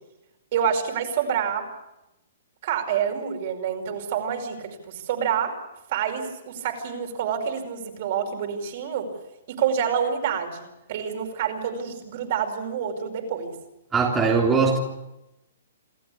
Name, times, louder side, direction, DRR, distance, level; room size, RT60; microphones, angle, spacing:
voice 1, 0.5-1.7 2.6-5.6 5.9-9.1 9.5-13.5, right 8 dB, 45° right, 4 dB, 5.1 m, -27 dB
voice 2, 13.9-14.8, right 5 dB, 10° right, -3 dB, 3.4 m, -20 dB
28.0 x 13.0 x 8.6 m, 0.92 s
hypercardioid pair, 155°, 0 cm